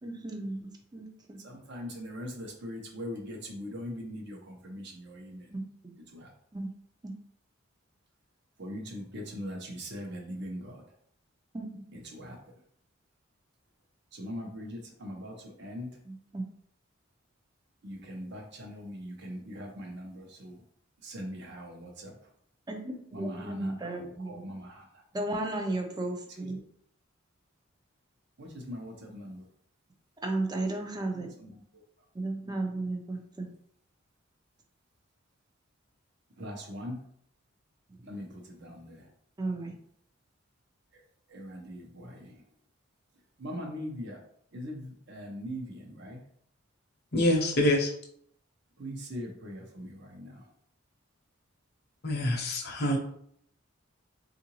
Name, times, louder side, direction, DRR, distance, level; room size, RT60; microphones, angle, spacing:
voice 1, 0.0-1.4 5.5-5.9 6.5-6.7 7.0-7.1 11.5-11.8 16.1-16.5 22.7-24.5 25.1-26.6 30.2-31.3 32.1-33.5 39.4-39.8, right 2 dB, 20° right, 0.5 m, -35 dB
voice 2, 1.4-5.5 6.1-6.3 8.6-10.8 11.9-12.4 14.1-15.9 17.8-20.6 21.0-22.1 23.1-25.0 26.4-26.6 28.4-29.4 31.1-31.6 36.4-37.0 38.0-39.1 41.3-42.4 43.4-44.2 44.5-46.2 48.8-50.5, equal, 55° right, 0.8 m, -41 dB
voice 3, 47.1-47.9 52.0-53.0, left 1 dB, 55° left, 0.7 m, -26 dB
3.8 x 2.5 x 2.9 m
head